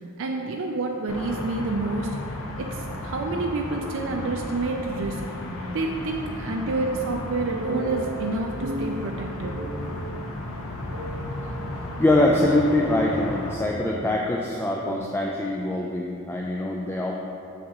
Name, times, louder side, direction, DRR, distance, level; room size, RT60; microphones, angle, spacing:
voice 1, 0.2-2.1 2.6-5.2 5.7-9.6, right 2 dB, 60° right, 1 dB, 0.4 m, -28 dB
sound 1, 1.1-13.5, left 1 dB, 70° left, 0.8 m, -34 dB
sound 2, 7.6-9.1 9.6-10.1 10.9-12.6 13.0-14.6 14.8-15.0, right 2 dB, 80° right, 0.9 m, -35 dB
voice 2, 12.0-17.1, left 1 dB, 10° left, -2 dB, 0.3 m, -23 dB
7.3 x 6.5 x 2.9 m, 2.7 s
head